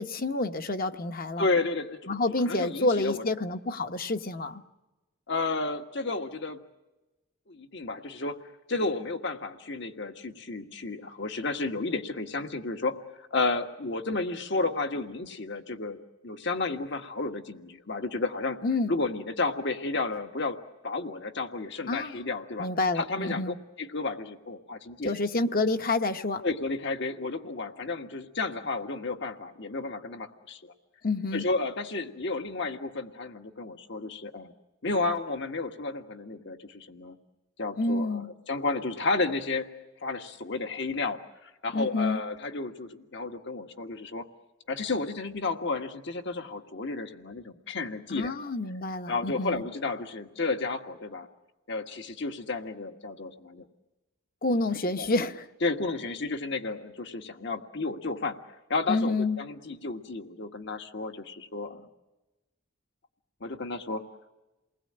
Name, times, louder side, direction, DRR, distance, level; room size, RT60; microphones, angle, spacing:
voice 1, 0.0-1.4 2.1-4.6 18.6-18.9 21.9-22.2 22.6-23.6 25.0-26.4 31.0-31.5 37.8-38.3 41.7-42.2 48.1-49.6 54.4-55.5 58.9-59.4, left 2 dB, 50° left, 8 dB, 1.1 m, -28 dB
voice 2, 1.4-2.2 2.4-3.2 5.3-6.6 7.5-8.4 8.7-18.6 18.9-20.6 20.8-22.7 23.0-25.1 26.4-30.7 31.3-34.5 34.8-37.2 37.6-39.7 40.0-44.3 44.7-48.3 49.1-51.3 51.7-53.7 55.0-55.1 55.6-61.9 63.4-64.0, left 3 dB, 65° left, 6 dB, 1.7 m, -32 dB
29.0 x 20.0 x 8.8 m, 1.1 s
head